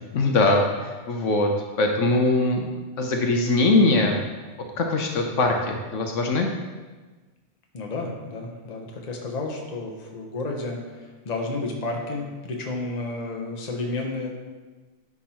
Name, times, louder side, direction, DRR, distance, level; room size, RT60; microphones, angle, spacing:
voice 1, 0.1-1.5 1.8-2.6 3.0-4.2 4.8-6.5, left 2 dB, 70° left, 2 dB, 1.1 m, -21 dB
voice 2, 7.7-14.3, left 2 dB, 35° left, 1 dB, 0.9 m, -31 dB
10.0 x 3.7 x 4.3 m, 1.3 s
omnidirectional pair, 1.4 m